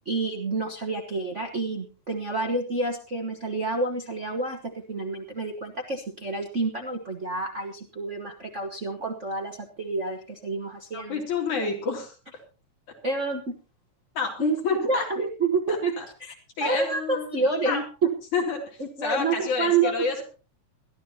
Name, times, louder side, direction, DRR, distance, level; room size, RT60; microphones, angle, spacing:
voice 1, 0.0-4.6 4.9-11.2 13.0-13.5 14.4-14.6 14.8-15.9 16.2-16.3 16.6-18.1 18.8-19.9, right 3 dB, 45° right, 0 dB, 0.9 m, -28 dB
voice 2, 10.9-12.1 14.2-15.1 15.7-16.0 16.6-17.8 18.3-18.6 19.0-20.2, left 4 dB, 85° left, 1 dB, 4.3 m, -29 dB
22.0 x 12.5 x 2.8 m, 0.34 s
omnidirectional pair, 3.3 m